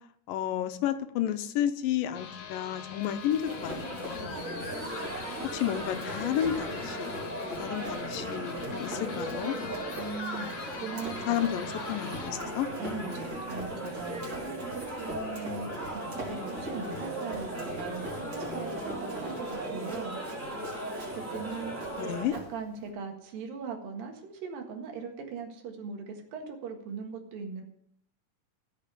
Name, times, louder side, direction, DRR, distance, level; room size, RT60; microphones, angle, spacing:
voice 1, 0.3-4.4 5.4-7.2 7.6-9.6 11.3-12.7 22.0-22.3, left 11 dB, 80° left, 10 dB, 2.6 m, -31 dB
sound 1, 2.1-12.3, left 7 dB, 60° left, 2.4 m, -44 dB
Run, 3.0-22.9, right 1 dB, 40° right, 4.3 m, -44 dB
sound 2, 3.4-22.2, right 1 dB, 5° right, 3.0 m, -37 dB
voice 2, 4.2-4.7 10.0-11.4 12.8-20.2 21.1-21.7 22.3-27.6, right 5 dB, 80° right, 2 dB, 3.4 m, -40 dB
15.0 x 6.6 x 7.0 m, 0.70 s
omnidirectional pair, 4.0 m